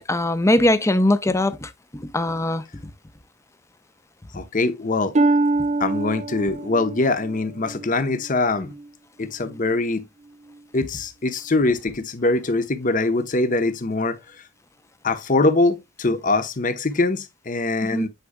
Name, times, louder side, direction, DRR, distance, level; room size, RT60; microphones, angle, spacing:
voice 1, 0.0-2.6 17.9-18.1, left 1 dB, 15° left, 0.6 m, -21 dB
voice 2, 4.3-5.2 5.8-8.7 9.2-10.0 10.7-14.2 15.0-18.1, left 2 dB, 40° left, 0.9 m, -23 dB
Harp, 5.1-8.9 9.4-9.8 10.5-10.6, right 2 dB, 35° right, 0.5 m, -25 dB
9.0 x 4.8 x 2.2 m
head